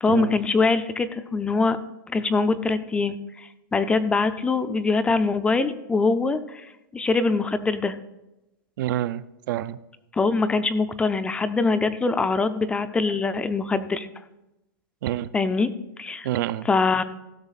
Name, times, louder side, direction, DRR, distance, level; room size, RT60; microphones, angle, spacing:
voice 1, 0.0-1.8 2.1-8.0 10.1-14.1 15.3-15.7 16.0-16.3 16.6-17.0, left 4 dB, 10° left, 11 dB, 0.3 m, -23 dB
voice 2, 8.8-9.8 15.0-15.3 16.2-16.7, right 13 dB, 65° right, 16 dB, 0.4 m, -27 dB
16.0 x 6.5 x 4.0 m, 0.94 s
supercardioid pair, 155°, 12 cm